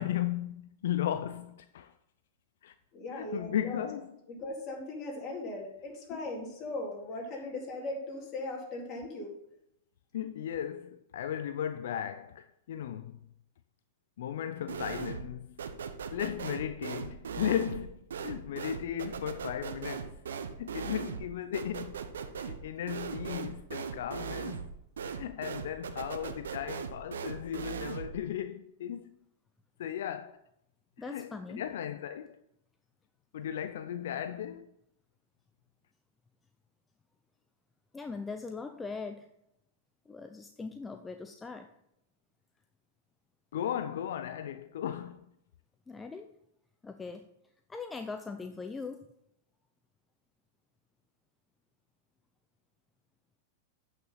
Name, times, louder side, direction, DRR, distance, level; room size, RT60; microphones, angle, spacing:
voice 1, 0.0-1.9 2.6-2.7 3.1-4.1 6.1-6.2 7.4-7.5 10.1-13.2 14.2-15.6 16.1-20.2 20.6-22.1 22.4-24.7 25.0-29.2 29.8-30.4 31.0-32.4 33.3-34.7 43.5-45.3, left 10 dB, 75° left, 0.4 m, -36 dB
voice 2, 2.9-3.9 4.3-9.3, left 2 dB, 35° left, 3.7 m, -38 dB
sound 1, 14.7-15.3 15.6-28.2, right 6 dB, 85° right, 0.9 m, -39 dB
voice 3, 31.0-31.6 37.9-39.3 40.1-41.7 45.9-46.3 46.8-47.3 47.7-49.1, left 4 dB, 10° left, 0.5 m, -41 dB
9.0 x 5.9 x 5.6 m
hypercardioid pair, 125°, 0 cm